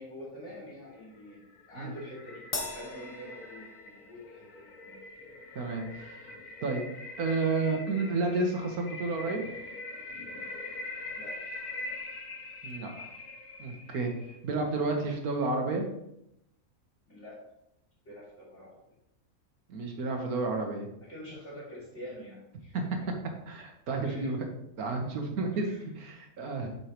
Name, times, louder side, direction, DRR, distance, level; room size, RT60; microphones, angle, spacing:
voice 1, 0.0-5.0 11.1-11.4 17.1-17.4 18.0-18.8 21.1-22.8 24.0-24.3 25.5-25.8, equal, 50° left, -7 dB, 3.4 m, -46 dB
sound 1, 1.0-14.4, left 2 dB, 85° left, 1.6 m, -43 dB
Crash cymbal, 2.5-4.2, left 3 dB, 35° left, 0.7 m, -39 dB
voice 2, 5.5-6.3 6.6-6.8 7.2-9.4 12.6-13.1 13.6-14.1 14.4-15.9 19.7-20.9 22.7-22.8 23.5-24.4 24.8-26.7, right 3 dB, 80° right, 3 dB, 1.6 m, -31 dB
8.2 x 6.2 x 3.0 m, 0.81 s
omnidirectional pair, 1.5 m